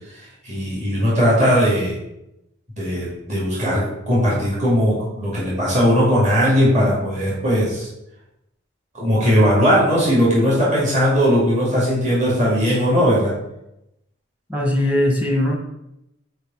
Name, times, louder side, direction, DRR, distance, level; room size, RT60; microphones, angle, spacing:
voice 1, 0.1-2.0 2.8-7.9 8.9-13.3, equal, 35° right, -7 dB, 2.3 m, -18 dB
voice 2, 14.5-15.6, left 1 dB, 10° right, 0 dB, 1.1 m, -19 dB
5.2 x 4.8 x 5.4 m, 0.85 s
head